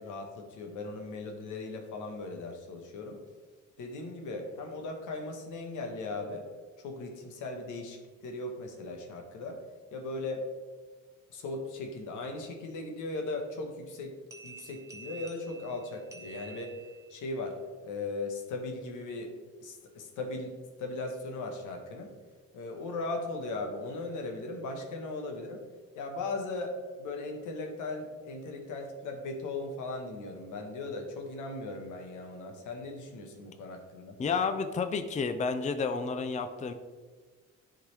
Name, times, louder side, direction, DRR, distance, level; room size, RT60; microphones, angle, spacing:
voice 1, 0.0-3.2 3.8-6.5 6.8-9.6 9.9-10.4 11.3-14.1 14.4-16.8 17.1-17.6 17.8-19.3 19.6-22.1 22.5-25.6 26.0-34.2, left 2 dB, 85° left, 3 dB, 1.2 m, -38 dB
sound 1, 14.3-17.2, right 4 dB, 10° right, 1.1 m, -49 dB
voice 2, 34.2-36.7, left 5 dB, 25° left, 8 dB, 0.5 m, -30 dB
10.0 x 3.9 x 3.2 m, 1.4 s
cardioid pair, 90°, 30 cm